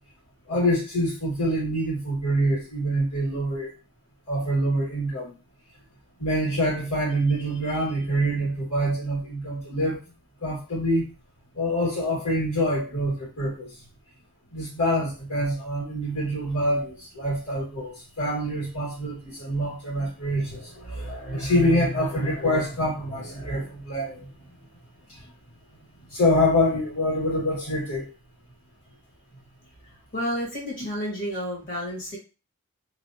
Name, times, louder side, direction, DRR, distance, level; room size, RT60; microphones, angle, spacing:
voice 1, 0.5-3.7 4.3-5.3 6.2-10.0 10.4-11.1 11.6-13.7 14.5-24.3 25.1-25.2 26.1-28.1, equal, 90° left, -3 dB, 1.8 m, -25 dB
voice 2, 30.1-32.2, equal, 40° left, -3 dB, 1.5 m, -30 dB
3.1 x 2.4 x 2.7 m, 0.31 s
head